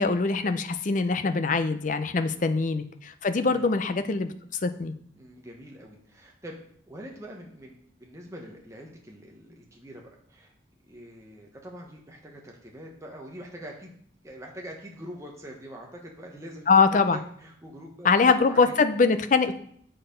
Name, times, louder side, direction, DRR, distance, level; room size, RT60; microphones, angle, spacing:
voice 1, 0.0-4.3 4.6-4.9 16.7-17.2 18.0-19.6, left 4 dB, 40° left, 9 dB, 0.5 m, -23 dB
voice 2, 5.2-6.6 6.9-10.0 10.3-10.5 10.9-13.9 14.2-18.1 18.5-18.8, equal, 15° right, 0 dB, 0.9 m, -44 dB
7.7 x 4.4 x 5.1 m, 0.64 s
head